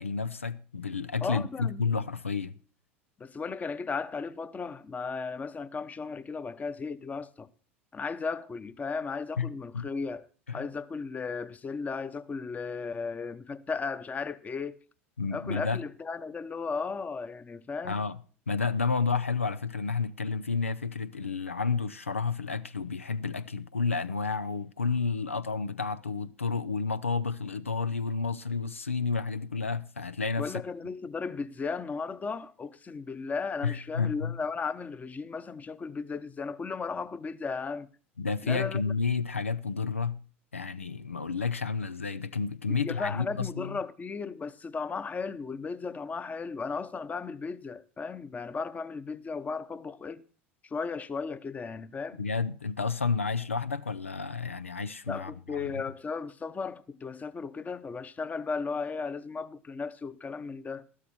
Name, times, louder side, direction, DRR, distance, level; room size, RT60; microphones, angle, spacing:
voice 1, 0.0-2.5 9.4-9.9 10.5-10.7 15.2-15.8 17.8-18.2 18.5-30.6 33.6-34.4 38.2-40.2 40.5-43.8 52.2-55.8, left 5 dB, 90° left, 0.5 m, -31 dB
voice 2, 1.2-1.8 3.2-7.5 7.9-10.3 10.5-14.8 15.3-18.0 30.4-37.9 38.4-38.8 42.7-50.2 50.6-52.2 55.1-60.8, left 4 dB, 20° left, 0.9 m, -35 dB
13.0 x 12.5 x 4.3 m
figure-of-eight pair, 75°, 7 cm